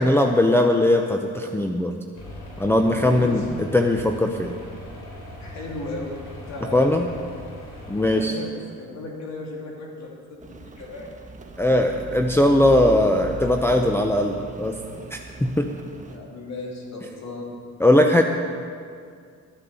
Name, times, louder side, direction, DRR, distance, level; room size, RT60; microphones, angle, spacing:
voice 1, 0.0-2.0 2.6-3.5 3.7-4.6 6.7-7.1 7.9-8.3 11.6-14.8 15.1-15.7 17.8-18.2, left 1 dB, 10° left, 3 dB, 0.7 m, -19 dB
sound 1, 2.1-8.1, left 1 dB, 80° left, 3.9 m, -40 dB
voice 2, 2.9-3.4 5.4-6.2 6.5-7.3 8.1-11.1 16.1-17.6, left 2 dB, 65° left, -2 dB, 3.0 m, -35 dB
Rain, 10.4-16.2, right 3 dB, 25° right, 1.3 m, -38 dB
12.0 x 9.3 x 7.0 m, 2.2 s
cardioid pair, 90°, 30 cm